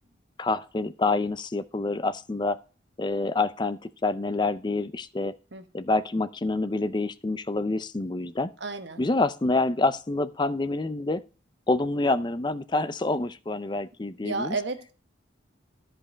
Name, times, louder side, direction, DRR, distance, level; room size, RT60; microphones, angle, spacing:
voice 1, 0.4-2.6 3.0-5.3 5.7-8.5 9.0-11.2 11.7-14.6, left 2 dB, 25° left, 0.4 m, -27 dB
voice 2, 8.6-9.0 14.2-14.9, right 3 dB, 65° right, 1.0 m, -32 dB
11.0 x 5.2 x 5.0 m
head